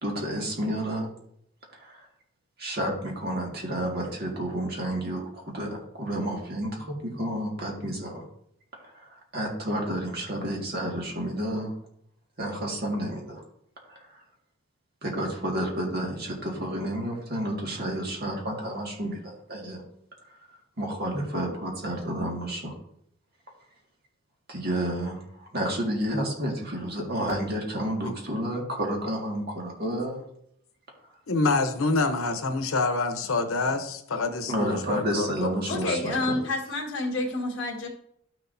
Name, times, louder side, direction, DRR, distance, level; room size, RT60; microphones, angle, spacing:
voice 1, 0.0-1.1 1.7-2.1 2.6-8.3 8.7-11.7 12.4-13.4 13.9-14.2 15.0-19.8 20.5-22.7 24.5-30.2 31.0-31.1 34.5-36.4, right 1 dB, 50° right, -1 dB, 1.9 m, -30 dB
voice 2, 31.3-36.0, left 3 dB, 90° left, 7 dB, 0.9 m, -27 dB
voice 3, 35.7-37.9, left 2 dB, 60° left, -2 dB, 1.6 m, -29 dB
12.0 x 6.3 x 2.7 m, 0.73 s
head